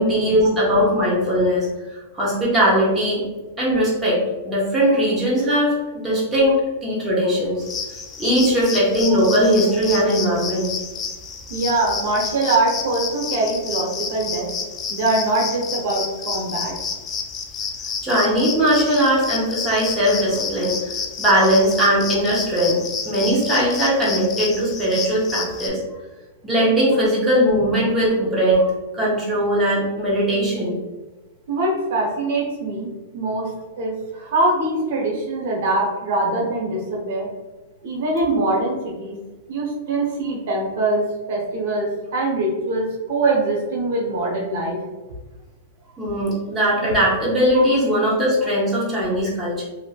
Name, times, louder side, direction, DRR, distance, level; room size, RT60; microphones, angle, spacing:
voice 1, 0.0-3.2 3.6-4.2 4.4-5.7 6.0-7.6 8.2-10.7 18.0-20.9 21.2-22.8 23.0-25.8 26.4-28.6 28.9-30.7 46.0-49.6, equal, 10° right, -7 dB, 1.0 m, -19 dB
sound 1, 7.6-25.7, left 5 dB, 25° left, 0.4 m, -30 dB
voice 2, 11.5-14.5 14.9-16.7 28.5-28.6 31.5-33.5 33.8-37.3 37.8-39.1 39.5-41.0 41.3-44.8 47.5-47.6, right 2 dB, 65° right, -2 dB, 1.0 m, -23 dB
3.0 x 2.6 x 2.4 m, 1.2 s
hypercardioid pair, 135°, 0 cm